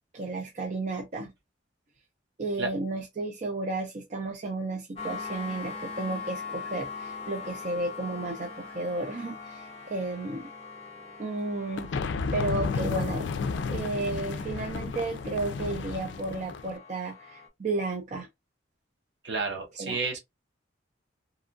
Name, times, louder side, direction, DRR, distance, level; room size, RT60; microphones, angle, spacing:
voice 1, 0.1-1.3 2.4-10.5 11.2-11.9 12.3-13.2 13.7-18.3 19.8-20.0, right 2 dB, 40° right, 0.5 m, -33 dB
sound 1, 4.9-17.5, left 5 dB, 35° left, 0.7 m, -42 dB
sound 2, 11.8-16.8, left 4 dB, 70° left, 0.3 m, -32 dB
voice 2, 19.2-20.2, right 4 dB, 65° right, 0.9 m, -31 dB
2.9 x 2.3 x 2.5 m
head